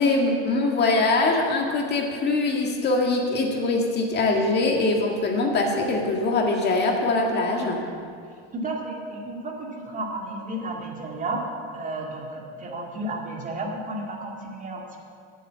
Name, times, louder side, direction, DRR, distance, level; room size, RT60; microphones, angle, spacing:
voice 1, 0.0-7.8, left 3 dB, 35° left, 1 dB, 1.9 m, -23 dB
voice 2, 8.5-11.4 11.7-15.0, right 2 dB, 25° right, 0 dB, 2.2 m, -32 dB
13.0 x 7.8 x 8.6 m, 2.2 s
cardioid pair, 140°, 30 cm